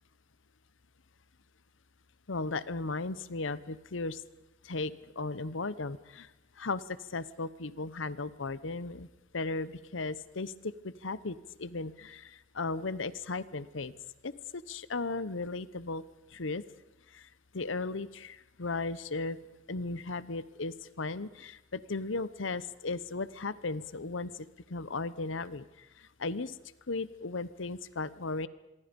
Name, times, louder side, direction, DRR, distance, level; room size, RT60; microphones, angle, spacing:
voice 1, 2.3-4.2 4.6-6.3 6.6-9.1 9.3-14.0 14.2-16.0 16.3-16.6 17.1-17.3 17.5-19.4 19.7-26.5 26.9-28.5, left 3 dB, 75° left, 17 dB, 0.9 m, -36 dB
26.5 x 23.0 x 5.3 m, 0.94 s
head